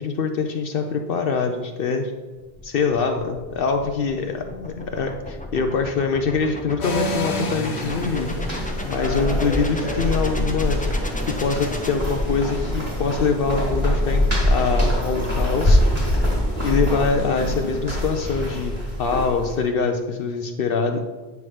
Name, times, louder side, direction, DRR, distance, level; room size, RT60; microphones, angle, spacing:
voice 1, 0.0-2.1 2.6-8.3 8.8-10.9 11.4-15.8 16.6-21.0, left 5 dB, 65° left, 5 dB, 0.7 m, -24 dB
sound 1, 2.4-12.7, left 1 dB, 10° left, 0.5 m, -35 dB
sound 2, 6.8-17.8, left 1 dB, 85° left, 1.2 m, -34 dB
sound 3, 7.6-19.6, equal, 25° right, 2.1 m, -24 dB
9.5 x 5.7 x 3.2 m, 1.3 s
omnidirectional pair, 1.1 m